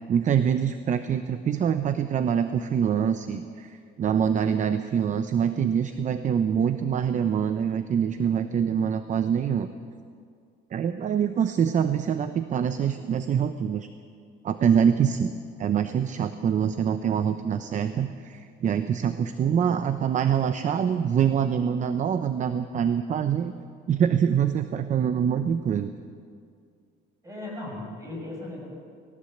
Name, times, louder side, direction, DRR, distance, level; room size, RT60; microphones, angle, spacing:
voice 1, 0.1-9.7 10.7-13.9 14.4-15.3 15.6-23.5 23.9-25.9, right 8 dB, 40° right, 10 dB, 0.7 m, -25 dB
voice 2, 27.2-28.7, left 2 dB, 15° right, -2 dB, 7.1 m, -37 dB
19.5 x 17.5 x 7.9 m, 2.2 s
cardioid pair, 140°, 20 cm